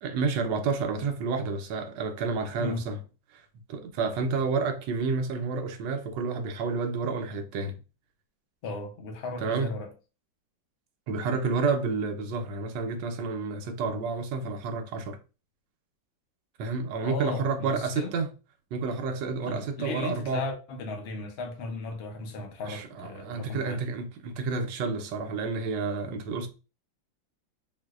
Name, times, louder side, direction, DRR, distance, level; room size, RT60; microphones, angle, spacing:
voice 1, 0.0-3.0 3.3-3.4 3.7-7.8 9.4-9.8 11.1-15.2 16.6-18.3 18.7-20.4 22.6-26.5, right 4 dB, 75° right, 1.2 m, -30 dB
voice 2, 8.6-9.9 17.0-18.2 19.4-23.8, left 3 dB, 85° left, 0.5 m, -36 dB
3.8 x 2.6 x 2.4 m
omnidirectional pair, 2.1 m